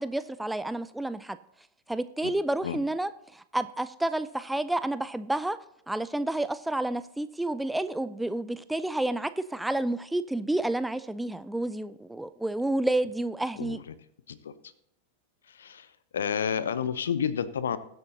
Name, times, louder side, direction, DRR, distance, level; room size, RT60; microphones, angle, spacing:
voice 1, 0.0-1.4 1.9-5.6 5.9-13.8, right 1 dB, 5° right, 13 dB, 0.4 m, -30 dB
voice 2, 15.5-15.9 16.1-17.8, left 7 dB, 65° left, 16 dB, 0.7 m, -30 dB
20.5 x 7.9 x 2.8 m, 0.76 s
figure-of-eight pair, 90°, 0 cm